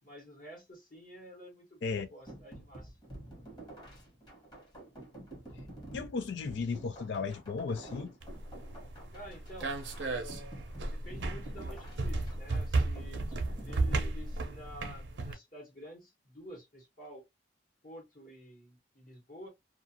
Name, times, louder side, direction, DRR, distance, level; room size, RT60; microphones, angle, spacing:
voice 1, 0.0-3.0 9.1-10.6 10.9-17.2 17.8-19.5, equal, 50° left, 1.2 m, -50 dB
sound 1, 2.3-14.8, right 1 dB, 25° left, 1.2 m, -49 dB
voice 2, 5.9-8.1, left 4 dB, 70° left, 0.4 m, -35 dB
sound 2, 8.2-15.3, right 2 dB, 85° right, 0.6 m, -34 dB
2.4 x 2.4 x 2.6 m
head